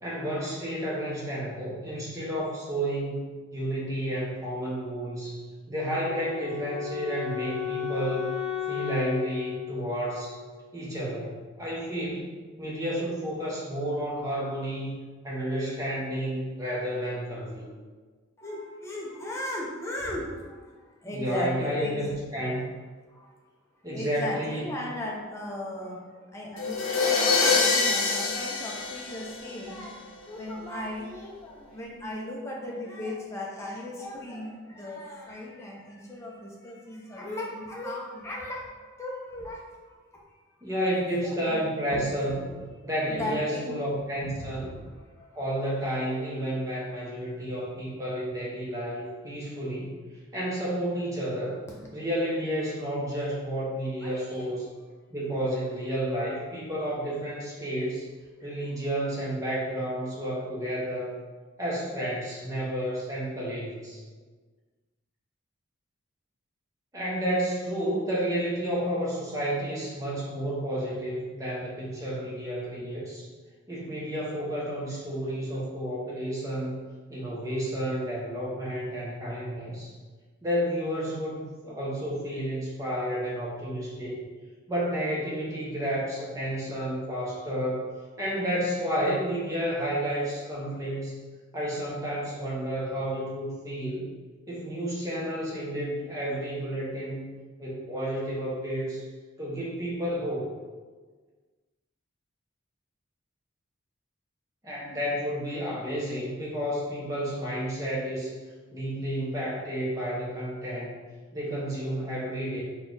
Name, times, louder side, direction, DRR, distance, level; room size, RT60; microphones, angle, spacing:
voice 1, 0.0-5.4 5.7-8.3 8.7-10.4 10.7-12.3 12.6-14.9 15.2-17.6 21.0-22.6 23.8-24.7 40.6-42.4 42.8-44.7 45.3-50.0 50.3-51.6 51.9-54.7 55.1-58.0 58.4-61.2 61.6-64.0 66.9-73.3 73.7-76.8 77.1-79.9 80.4-84.2 84.7-91.2 91.5-94.1 94.5-97.2 97.6-99.0 99.4-100.5 104.6-108.3 108.7-111.0 111.3-112.6, equal, 15° right, -6 dB, 0.8 m, -31 dB
Wind instrument woodwind instrument, 5.7-10.8, left 9 dB, 40° right, 1.0 m, -34 dB
voice 2, 18.4-22.1 23.1-23.3 23.9-30.0 30.3-40.0 40.7-40.8 41.2-41.6 41.9-42.1 42.4-42.5 43.1-43.7 44.2-45.4 51.7-51.8 54.0-54.6, left 1 dB, 15° left, -3 dB, 0.5 m, -37 dB
sound 1, 26.6-29.8, left 4 dB, 70° left, 0.5 m, -25 dB
4.1 x 2.3 x 3.9 m, 1.4 s
head